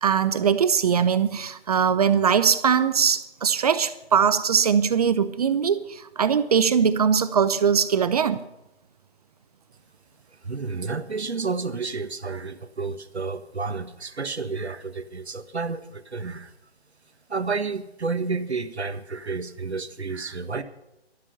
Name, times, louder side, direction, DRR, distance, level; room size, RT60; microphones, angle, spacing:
voice 1, 0.0-8.4, right 7 dB, 35° right, 13 dB, 0.8 m, -21 dB
voice 2, 10.4-16.5 17.3-20.6, right 4 dB, 80° right, 10 dB, 1.5 m, -30 dB
13.0 x 12.0 x 5.5 m, 0.92 s
figure-of-eight pair, 145°, 32 cm